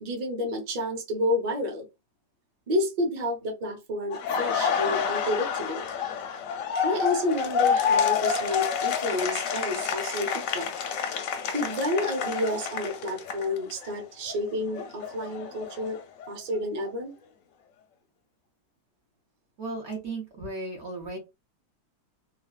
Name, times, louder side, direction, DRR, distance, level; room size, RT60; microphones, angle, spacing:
voice 1, 0.0-1.9 2.7-5.8 6.8-10.7 11.5-16.0 16.3-17.1, left 1 dB, 30° right, 2 dB, 0.7 m, -30 dB
Laughter, 4.1-13.9 14.3-16.3, left 7 dB, 70° left, 0.8 m, -28 dB
voice 2, 19.6-21.2, right 2 dB, 50° right, 0 dB, 1.0 m, -35 dB
3.5 x 2.2 x 2.3 m, 0.23 s
omnidirectional pair, 1.8 m